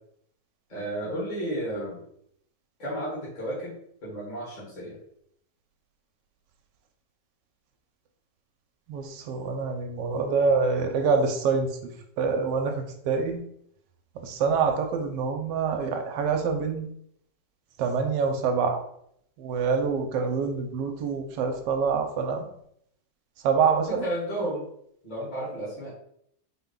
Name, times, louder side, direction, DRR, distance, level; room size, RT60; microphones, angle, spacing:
voice 1, 0.7-2.0 2.8-5.0 23.9-24.6 25.0-25.9, right 1 dB, 30° left, -7 dB, 1.2 m, -32 dB
voice 2, 8.9-11.7 12.2-12.7 13.1-13.4 14.2-16.9 17.8-18.8 19.4-22.4 23.4-24.0, right 5 dB, 85° right, 5 dB, 1.3 m, -25 dB
4.1 x 2.2 x 3.7 m, 0.71 s
omnidirectional pair, 1.9 m